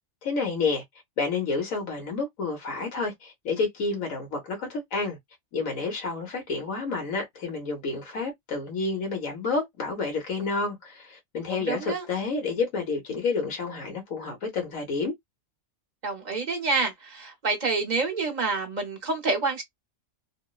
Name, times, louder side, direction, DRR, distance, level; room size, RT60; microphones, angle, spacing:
voice 1, 0.2-0.8 1.2-5.2 5.5-15.1, left 4 dB, 85° left, 1.4 m, -29 dB
voice 2, 11.5-12.1 16.0-19.6, right 3 dB, 40° right, 0.7 m, -28 dB
2.9 x 2.0 x 2.3 m
omnidirectional pair, 1.4 m